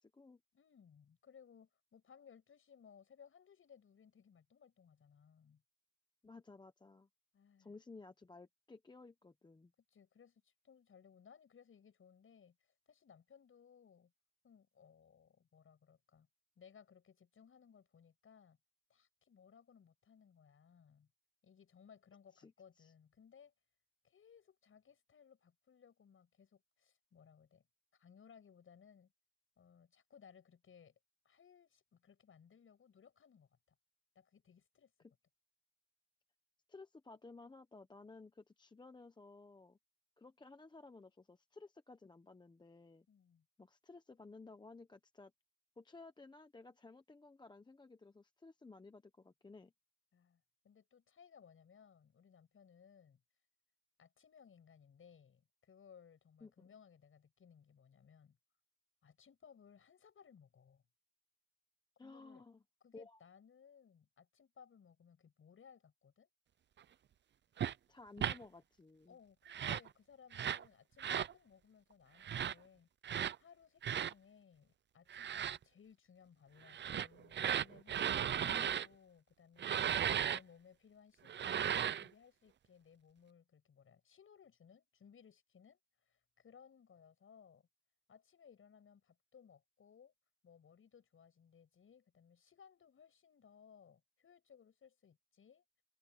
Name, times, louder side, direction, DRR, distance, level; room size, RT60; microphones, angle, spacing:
voice 1, 0.0-0.4 6.2-7.1 7.6-9.7 22.3-22.9 36.7-39.8 40.2-43.1 43.6-45.3 45.8-49.7 56.4-56.7 62.0-62.6 62.9-63.2 67.9-69.2 78.4-78.8, left 3 dB, 15° left, 0.8 m, -56 dB
voice 2, 0.5-5.6 7.3-7.7 9.9-14.1 14.4-16.3 16.6-18.6 18.9-21.1 21.4-23.5 24.0-27.7 27.9-29.1 29.6-30.9 31.2-33.6 34.1-34.9 43.1-43.5 50.1-53.2 54.0-58.4 59.0-60.8 62.0-62.4 62.8-66.3 69.1-72.9 73.4-87.7 88.1-90.1 90.4-95.6, left 7 dB, 40° left, 7.9 m, -63 dB
sound 1, 67.6-67.7 68.2-68.4 69.5-69.9 70.3-70.6 71.0-71.3 72.2-72.5 73.0-73.4 73.8-74.1 75.1-75.6 76.7-78.9 79.6-80.4 81.3-82.1, right 9 dB, 35° right, 0.5 m, -36 dB
wide cardioid pair, 170°, 31 cm